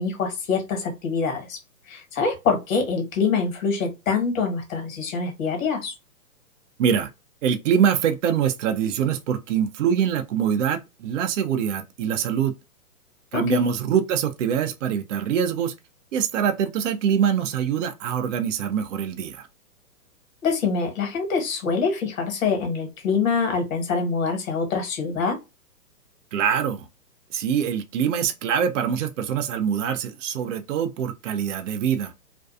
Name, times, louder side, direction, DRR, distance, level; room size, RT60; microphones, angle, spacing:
voice 1, 0.0-1.6 1.9-5.9 13.3-13.6 20.4-25.4, left 5 dB, 55° left, 1.3 m, -25 dB
voice 2, 6.8-7.1 7.4-12.5 13.3-15.7 16.1-19.5 26.3-26.9 27.3-32.1, right 8 dB, 50° right, 0.5 m, -24 dB
2.5 x 2.2 x 2.4 m
hypercardioid pair, 135°, 48 cm